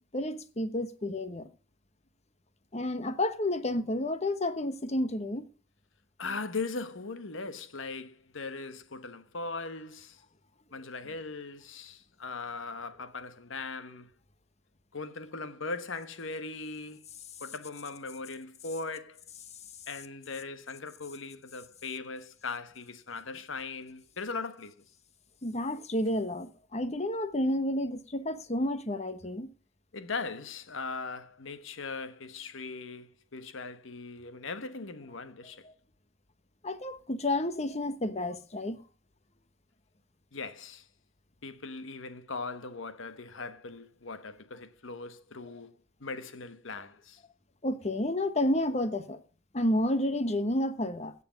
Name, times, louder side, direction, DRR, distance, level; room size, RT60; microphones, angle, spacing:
voice 1, 0.1-1.5 2.7-5.5 25.4-29.5 36.6-38.8 47.6-49.2 49.5-51.1, left 1 dB, 35° left, 1.0 m, -30 dB
voice 2, 6.2-10.2 10.7-14.1 14.9-17.1 17.4-19.3 19.9-24.7 29.9-35.7 40.3-40.9 41.4-47.2, left 4 dB, 70° left, 1.2 m, -39 dB
16.5 x 6.9 x 5.1 m
head